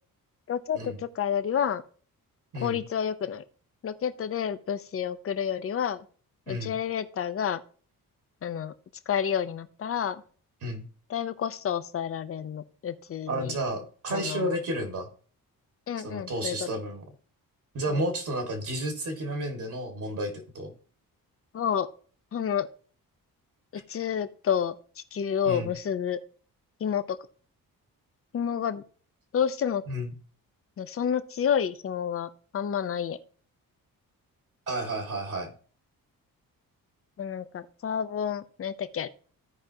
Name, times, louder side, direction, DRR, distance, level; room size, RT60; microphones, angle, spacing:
voice 1, 0.5-1.8 2.5-3.4 3.8-6.0 6.5-7.6 8.4-8.7 9.1-10.2 11.1-13.6 14.1-14.5 15.9-16.7 17.9-18.0 21.5-21.9 22.3-22.7 23.9-26.2 26.8-27.2 28.3-28.8 29.3-29.8 30.8-33.2 37.2-39.1, left 8 dB, 40° left, 12 dB, 0.6 m, -29 dB
voice 2, 13.3-15.1 16.0-17.0 17.7-20.7 25.5-25.7 29.9-30.1 34.7-35.5, right 1 dB, 60° right, 4 dB, 1.9 m, -31 dB
15.0 x 5.1 x 2.8 m, 0.42 s
wide cardioid pair, 170°, 35 cm